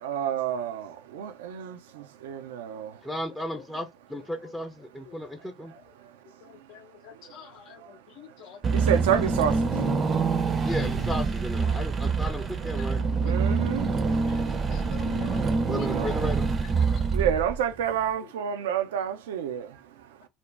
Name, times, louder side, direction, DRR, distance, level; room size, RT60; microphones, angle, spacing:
voice 1, 0.0-3.0 8.7-9.7 13.2-14.2 15.8-16.1 17.1-19.8, right 9 dB, 80° right, 0.4 m, -29 dB
voice 2, 3.0-5.7 10.6-13.0 15.7-16.5, equal, 5° left, 0.5 m, -34 dB
voice 3, 6.4-8.9 10.1-10.3 10.6-10.7 11.7-11.8 13.2-13.7 14.3-14.4 14.7-15.4 15.8-15.9 16.2-16.3 16.9-17.0, left 9 dB, 60° left, 0.6 m, -48 dB
Car / Engine, 8.6-17.8, right 4 dB, 35° right, 0.6 m, -26 dB
2.5 x 2.1 x 3.2 m
hypercardioid pair, 75°, 0 cm